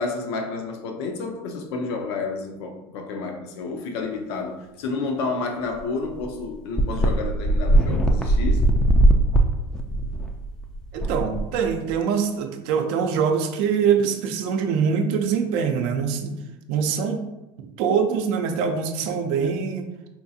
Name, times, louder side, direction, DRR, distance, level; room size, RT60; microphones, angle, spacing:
voice 1, 0.0-8.7, left 4 dB, 80° left, 4 dB, 0.6 m, -30 dB
sound 1, 5.7-5.8 6.1-6.2 6.8-11.9, right 1 dB, 5° left, 0.3 m, -20 dB
voice 2, 10.9-16.3 16.7-17.2 17.6-19.9, right 6 dB, 70° right, 5 dB, 0.5 m, -24 dB
4.4 x 2.3 x 2.6 m, 1.0 s
supercardioid pair, 120°, 13 cm